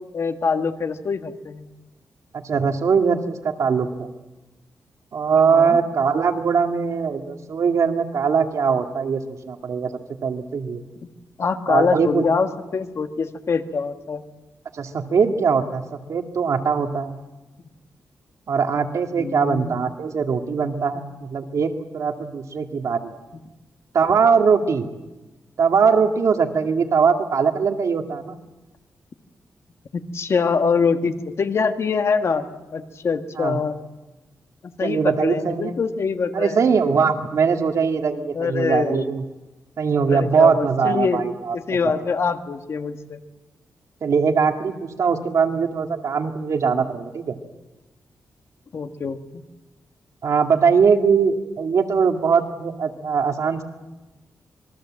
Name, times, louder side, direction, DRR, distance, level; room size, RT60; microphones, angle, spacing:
voice 1, 0.1-1.7 5.5-5.8 11.4-14.2 19.2-19.8 29.9-32.5 32.7-33.8 34.6-36.8 38.3-39.1 40.1-41.2 41.5-43.2 48.7-49.2, left 5 dB, 50° left, 7 dB, 1.6 m, -24 dB
voice 2, 2.4-4.1 5.1-9.9 10.2-10.8 11.7-12.3 14.7-15.8 16.1-17.2 18.5-23.1 23.9-24.8 25.6-28.4 33.4-33.6 34.8-35.8 36.3-39.2 39.8-41.6 41.8-41.9 44.0-47.4 50.2-53.6, right 6 dB, 65° right, 4 dB, 2.3 m, -21 dB
26.5 x 21.5 x 7.6 m, 1.1 s
wide cardioid pair, 135°, 6 cm